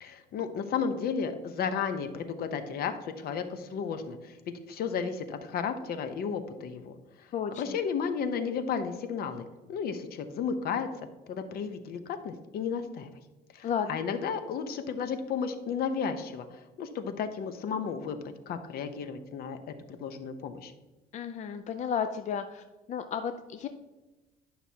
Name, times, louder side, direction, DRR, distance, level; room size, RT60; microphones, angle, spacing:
voice 1, 0.0-7.0 7.6-10.9 11.3-13.1 13.5-16.5 16.8-18.2 18.5-19.6 20.0-20.7, left 6 dB, 65° left, 9 dB, 0.8 m, -33 dB
voice 2, 7.3-7.8 13.6-14.0 21.1-23.7, left 7 dB, 45° left, 8 dB, 0.5 m, -33 dB
11.0 x 5.8 x 2.8 m, 1.1 s
cardioid pair, 110°, 17 cm